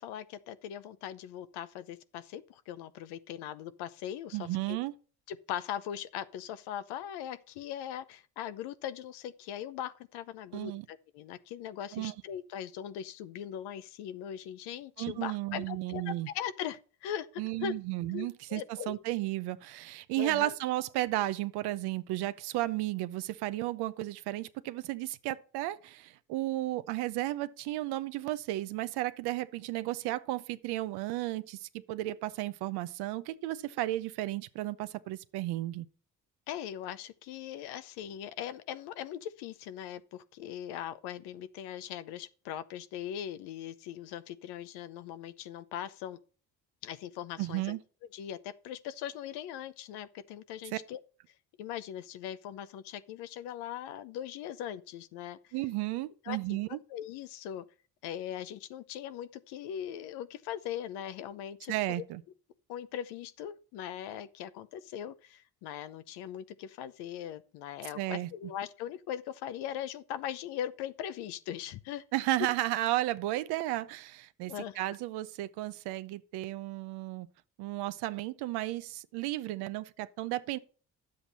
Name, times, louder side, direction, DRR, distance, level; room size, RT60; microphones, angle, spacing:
voice 1, 0.0-4.8 5.3-17.3 17.6-17.7 18.1-19.0 20.2-20.6 36.5-46.2 46.8-47.8 48.1-51.0 51.6-55.4 56.2-56.6 56.9-57.6 58.0-62.0 62.7-72.0 74.5-75.0, left 10 dB, 85° left, 0.8 m, -40 dB
voice 2, 4.3-4.9 10.5-10.9 11.9-12.1 15.0-16.3 17.4-35.9 47.4-47.8 50.7-50.8 55.5-56.8 61.7-62.2 68.0-68.3 72.1-77.3 77.6-80.6, right 16 dB, 85° right, 0.7 m, -33 dB
10.5 x 7.8 x 4.1 m
supercardioid pair, 60°, 39 cm